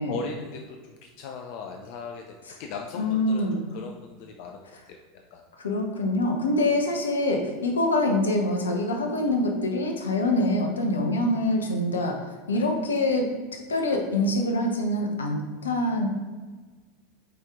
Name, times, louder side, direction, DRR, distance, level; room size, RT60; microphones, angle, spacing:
voice 1, 0.1-5.0 5.3-5.4 10.3-10.4 12.5-12.7, left 5 dB, 55° left, 3 dB, 0.6 m, -39 dB
voice 2, 3.0-3.6 5.6-16.1, left 1 dB, 75° left, 3 dB, 1.0 m, -25 dB
8.3 x 4.5 x 3.7 m, 1.4 s
figure-of-eight pair, 80°, 0 cm